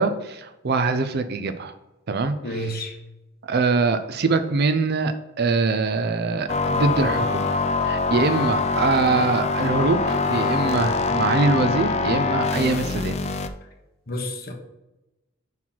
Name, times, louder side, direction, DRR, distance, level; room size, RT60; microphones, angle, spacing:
voice 1, 0.0-1.7 2.1-2.7 3.5-7.5 7.8-13.2, right 3 dB, 50° right, 10 dB, 0.5 m, -23 dB
voice 2, 2.4-3.0 14.1-14.5, equal, 45° left, 2 dB, 1.1 m, -30 dB
sound 1, 6.5-13.5, left 4 dB, 30° left, 0.4 m, -24 dB
5.6 x 4.6 x 5.9 m, 0.97 s
head